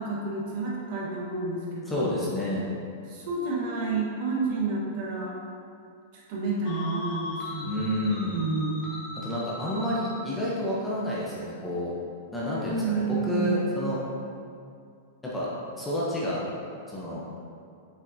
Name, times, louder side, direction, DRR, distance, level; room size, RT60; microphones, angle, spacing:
voice 1, 0.0-2.1 3.1-5.3 6.3-7.9 8.3-8.8 12.5-13.9, right 3 dB, 45° right, -4 dB, 1.3 m, -30 dB
voice 2, 1.9-2.7 7.6-8.4 9.2-11.9 12.3-14.0 15.2-15.5 15.8-16.4 16.9-17.2, equal, 5° left, -7 dB, 0.7 m, -29 dB
sound 1, 6.6-10.4, left 3 dB, 30° left, 1.0 m, -39 dB
7.1 x 5.0 x 2.7 m, 2.5 s
supercardioid pair, 165°, 0 cm